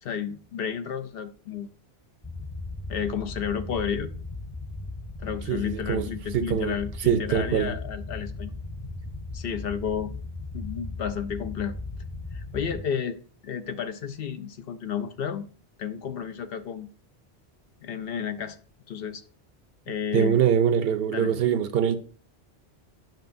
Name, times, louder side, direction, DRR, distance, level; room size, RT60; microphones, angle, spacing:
voice 1, 0.0-1.7 2.9-4.1 5.2-8.5 9.3-10.1 10.5-11.7 12.3-13.2 13.4-15.5 15.8-16.9 17.8-18.6 18.9-19.2 19.9-20.4 21.1-21.3, left 7 dB, 65° left, 0.8 m, -32 dB
sound 1, 2.2-12.8, left 2 dB, 20° left, 0.5 m, -37 dB
voice 2, 5.5-6.1 6.3-6.7 7.1-7.7 20.1-22.0, right 8 dB, 70° right, 0.8 m, -23 dB
9.0 x 6.0 x 2.6 m
omnidirectional pair, 1.1 m